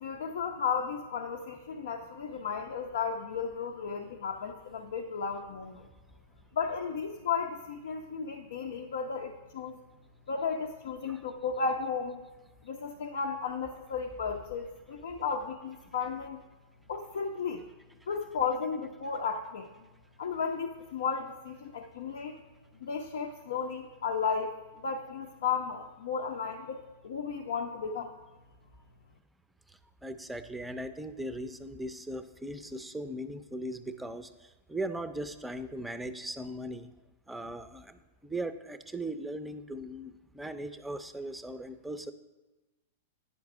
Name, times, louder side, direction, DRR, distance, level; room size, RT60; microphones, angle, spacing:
voice 1, 0.0-5.8 6.5-9.8 10.3-12.2 12.6-16.4 16.9-17.6 18.1-19.7 20.2-22.4 22.8-28.1, left 5 dB, 80° left, 2 dB, 0.7 m, -34 dB
voice 2, 30.0-36.9 37.3-42.1, right 1 dB, 5° right, 10 dB, 0.5 m, -39 dB
10.0 x 5.3 x 6.0 m, 1.1 s
hypercardioid pair, 140°, 0 cm